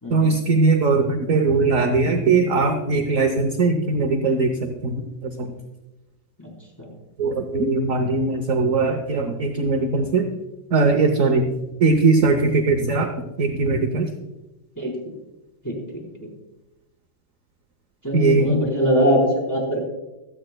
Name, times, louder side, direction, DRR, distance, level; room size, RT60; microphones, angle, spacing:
voice 1, 0.1-5.5 7.2-10.3 10.7-11.5 11.8-13.1 13.4-14.1 18.1-18.6, right 3 dB, 55° right, 4 dB, 1.0 m, -20 dB
voice 2, 18.0-19.8, equal, 10° left, -3 dB, 3.8 m, -21 dB
25.5 x 8.8 x 2.2 m, 1.0 s
omnidirectional pair, 2.3 m